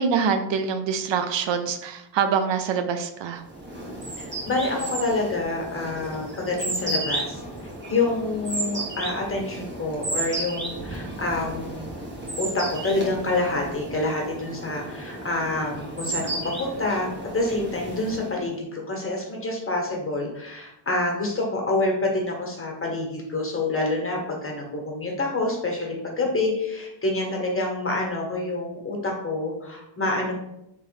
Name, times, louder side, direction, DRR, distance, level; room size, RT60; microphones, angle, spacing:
voice 1, 0.0-3.4, right 6 dB, 65° right, 8 dB, 0.5 m, -25 dB
sound 1, 3.5-18.4, right 2 dB, 20° right, 1.4 m, -33 dB
voice 2, 4.2-7.4 7.9-11.8 12.4-30.3, left 2 dB, 25° left, -1 dB, 1.4 m, -27 dB
3.3 x 3.2 x 3.3 m, 0.85 s
supercardioid pair, 55°, 48 cm